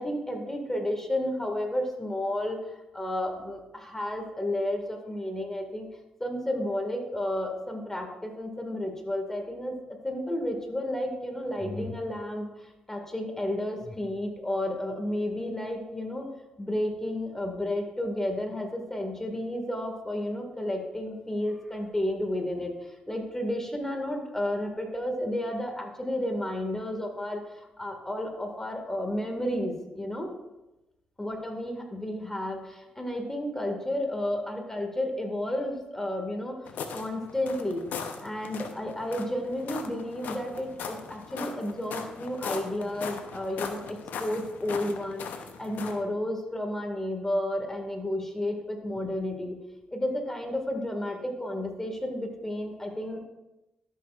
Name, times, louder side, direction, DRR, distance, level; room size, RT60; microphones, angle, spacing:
voice 1, 0.0-2.6 2.9-5.9 6.2-9.7 10.0-16.3 16.6-30.3 31.2-36.6 36.9-37.9 38.2-45.3 45.6-49.6 49.9-53.2, left 1 dB, 15° left, 3 dB, 2.1 m, -32 dB
sound 1, 36.6-46.0, left 6 dB, 70° left, 0.8 m, -39 dB
12.5 x 6.6 x 2.5 m, 0.96 s
supercardioid pair, 50°, 3 cm